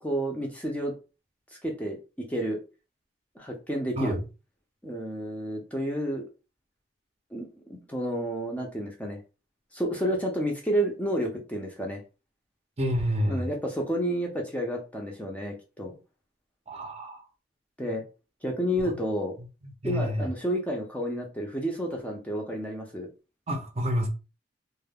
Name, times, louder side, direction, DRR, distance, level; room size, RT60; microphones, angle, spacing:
voice 1, 0.0-0.9 1.6-2.6 3.4-4.2 4.8-6.2 7.3-9.2 9.7-12.0 13.3-16.0 17.8-18.0 18.4-19.4 19.8-23.1, equal, 10° left, 0.5 m, -30 dB
voice 2, 12.8-13.5 16.7-17.2 19.8-20.3 23.5-24.1, equal, 35° right, 0.6 m, -28 dB
2.2 x 2.0 x 3.4 m
head